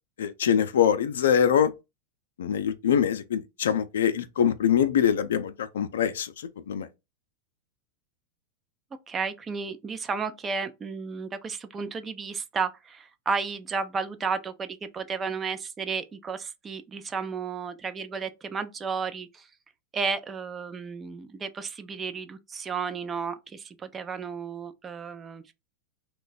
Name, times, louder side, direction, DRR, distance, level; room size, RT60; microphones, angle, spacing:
voice 1, 0.2-1.7 2.4-6.3 6.7-6.9, left 8 dB, 85° left, 0.4 m, -23 dB
voice 2, 9.1-19.5 19.9-25.5, right 5 dB, 25° right, 0.4 m, -33 dB
2.6 x 2.2 x 3.8 m
hypercardioid pair, 115°, 0 cm